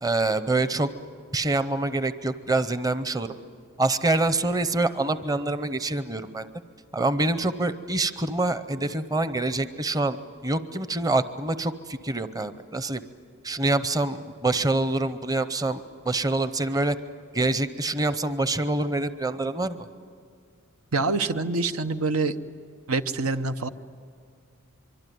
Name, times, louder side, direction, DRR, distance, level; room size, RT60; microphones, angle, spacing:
voice 1, 0.0-0.9 1.3-3.3 3.8-6.5 6.9-13.0 13.4-17.0 17.3-19.8, right 2 dB, 15° right, 12 dB, 0.7 m, -26 dB
voice 2, 20.9-22.4 22.9-23.7, right 3 dB, 90° right, 10 dB, 0.9 m, -25 dB
25.0 x 24.0 x 9.4 m, 2.2 s
head